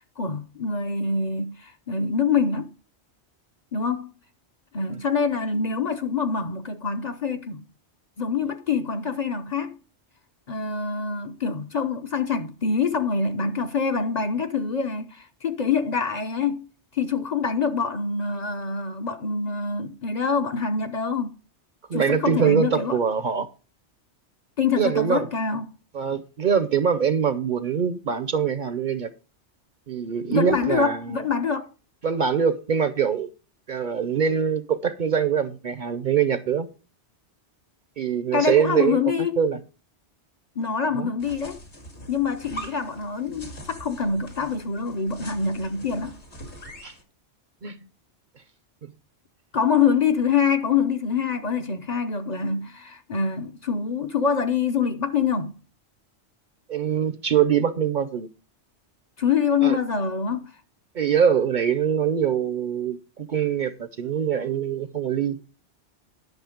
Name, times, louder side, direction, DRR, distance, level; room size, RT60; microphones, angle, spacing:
voice 1, 0.2-2.7 3.7-4.1 4.7-7.7 8.2-9.7 10.5-16.6 16.9-21.4 21.9-23.0 24.6-25.6 30.3-31.7 38.3-39.3 40.6-41.6 42.1-46.2 49.5-55.6 59.2-60.6, left 5 dB, 45° left, 0.7 m, -25 dB
voice 2, 21.9-23.5 24.8-25.3 25.9-29.1 29.9-31.2 32.0-33.3 33.7-36.7 38.0-39.0 39.4-39.6 41.0-41.1 46.8-46.9 47.6-47.8 56.7-58.3 59.6-59.8 60.9-65.4, right 7 dB, 50° right, 0.7 m, -23 dB
sound 1, 41.2-47.0, equal, 75° left, 2.3 m, -42 dB
11.0 x 6.3 x 5.0 m
omnidirectional pair, 1.2 m